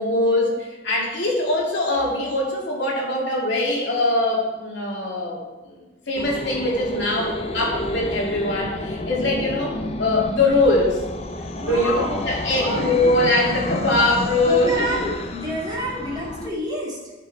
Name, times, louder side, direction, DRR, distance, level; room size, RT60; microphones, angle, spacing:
voice 1, 0.0-5.4 5.6-5.8 6.1-11.0 11.7-15.0, left 2 dB, 65° left, -3 dB, 3.0 m, -22 dB
sound 1, 6.1-16.5, left 1 dB, 30° left, 0.6 m, -30 dB
voice 2, 11.5-12.3 12.6-13.2 14.4-17.1, equal, 20° right, -5 dB, 2.4 m, -29 dB
14.0 x 6.7 x 4.5 m, 1.2 s
head